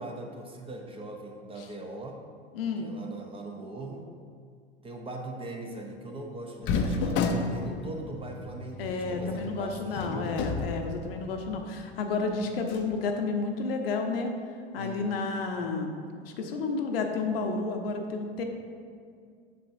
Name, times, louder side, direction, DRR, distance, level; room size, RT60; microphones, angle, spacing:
voice 1, 0.0-2.2 2.8-4.1 4.8-10.5 14.8-15.1, right 2 dB, 15° right, 2 dB, 0.7 m, -40 dB
voice 2, 2.5-2.9 8.8-14.3 14.7-18.4, left 4 dB, 65° left, 4 dB, 0.8 m, -31 dB
sound 1, 6.6-11.5 11.9-12.0 12.6-12.9, left 4 dB, 35° left, 0.6 m, -32 dB
7.6 x 6.2 x 2.6 m, 2.2 s
figure-of-eight pair, 85°, 32 cm